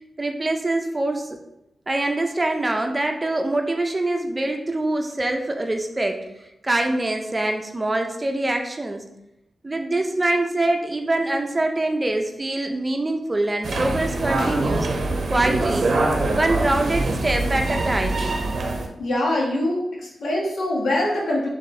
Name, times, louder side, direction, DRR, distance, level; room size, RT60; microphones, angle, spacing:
voice 1, 0.2-1.4 1.9-6.2 6.6-9.0 9.6-14.9 15.3-15.9 16.3-18.2, right 2 dB, 25° right, 4 dB, 0.5 m, -24 dB
sound 1, 13.6-18.9, right 2 dB, 70° right, 0.6 m, -24 dB
voice 2, 19.0-21.5, left 1 dB, 80° left, -3 dB, 1.3 m, -23 dB
4.3 x 3.6 x 3.2 m, 0.87 s
wide cardioid pair, 85°, 0 cm